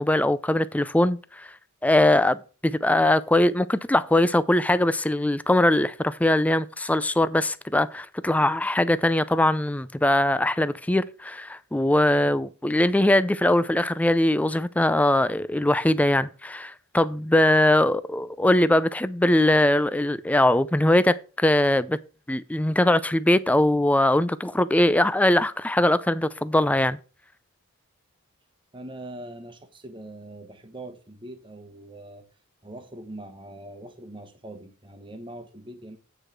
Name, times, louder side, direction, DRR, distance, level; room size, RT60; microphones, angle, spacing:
voice 1, 0.0-1.5 1.8-2.4 2.6-22.0 22.3-27.0, left 1 dB, 5° left, 0.4 m, -21 dB
voice 2, 28.7-32.3 32.6-36.0, right 1 dB, 25° right, 1.1 m, -42 dB
8.9 x 4.9 x 5.9 m
head